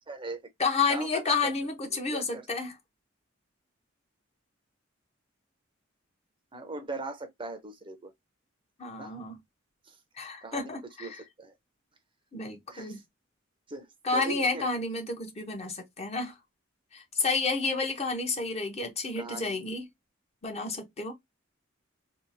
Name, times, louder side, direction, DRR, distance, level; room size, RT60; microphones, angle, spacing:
voice 1, 0.1-0.4 0.9-1.5 1.9-2.5 6.5-8.1 9.0-9.2 9.8-10.0 10.4-11.5 12.7-13.0 13.7-14.7 19.2-19.6, right 3 dB, 25° right, 0.5 m, -40 dB
voice 2, 0.6-2.7 8.8-9.4 10.2-11.2 12.3-13.0 14.0-16.3 16.9-19.8 20.4-21.1, left 4 dB, 35° left, 0.7 m, -30 dB
2.7 x 2.3 x 2.5 m
head